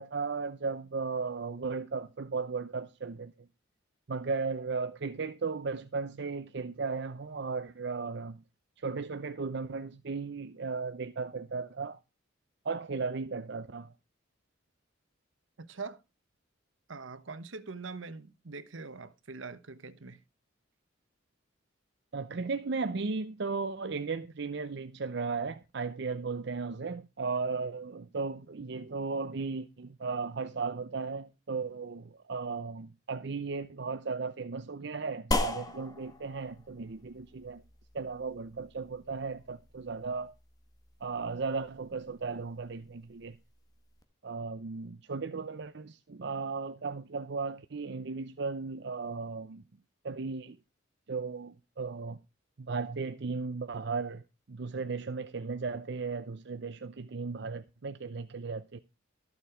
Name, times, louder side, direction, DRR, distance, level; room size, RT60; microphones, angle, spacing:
voice 1, 0.0-3.3 4.1-8.4 8.8-12.0 12.6-13.9 22.1-37.6 37.9-40.3 41.0-43.4 44.2-49.6 50.0-50.6 51.1-52.2 52.6-54.2 54.5-58.8, right 4 dB, 60° right, 0.6 m, -36 dB
voice 2, 15.6-16.0 16.9-20.2, right 4 dB, 80° right, 1.0 m, -43 dB
sound 1, 35.3-44.0, left 2 dB, 20° left, 1.5 m, -39 dB
14.0 x 7.2 x 4.9 m
head